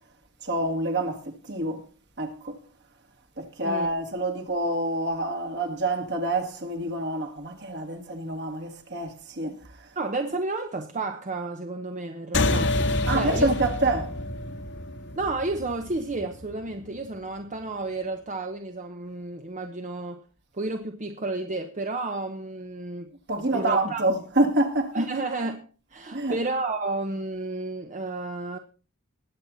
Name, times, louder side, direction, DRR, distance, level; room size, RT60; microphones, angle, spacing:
voice 1, 0.4-1.8 2.2-2.6 3.4-9.9 13.1-14.2 23.3-25.0 26.1-26.4, right 2 dB, 55° right, 2.3 m, -27 dB
voice 2, 10.0-12.8 13.1-13.5 15.2-20.2 20.5-23.1 23.5-24.1 24.9-28.6, right 2 dB, 35° right, 1.0 m, -31 dB
sound 1, 12.3-17.2, left 2 dB, 60° left, 1.6 m, -28 dB
20.0 x 8.0 x 4.1 m
head